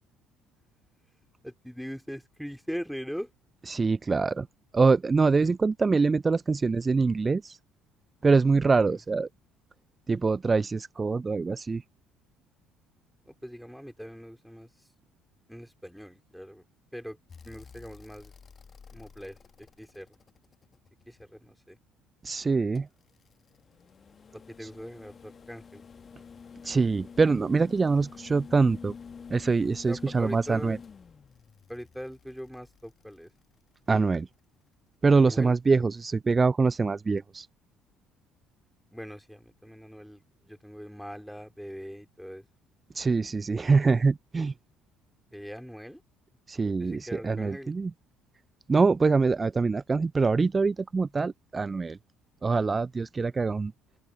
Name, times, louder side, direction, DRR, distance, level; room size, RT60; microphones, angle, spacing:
voice 1, 1.4-3.3 5.4-5.5 8.5-9.0 13.3-14.7 15.5-16.6 16.9-17.2 17.4-18.3 18.9-20.1 21.1-21.8 24.3-25.8 29.9-30.8 31.7-33.3 35.2-35.5 38.9-42.4 45.3-46.0 46.6-47.7, equal, ahead, 3.7 m, -41 dB
voice 2, 3.7-4.5 4.7-7.6 8.2-9.3 10.1-11.8 22.2-22.9 24.6-24.7 26.6-28.9 29.3-30.8 33.9-34.3 35.0-37.5 42.9-44.5 46.5-47.9 48.7-52.0 52.4-53.7, right 4 dB, 25° right, 0.7 m, -24 dB
sound 1, 17.3-21.5 22.8-33.9 35.5-35.6, left 6 dB, 35° left, 1.9 m, -49 dB
open air
figure-of-eight pair, 55°, 0 cm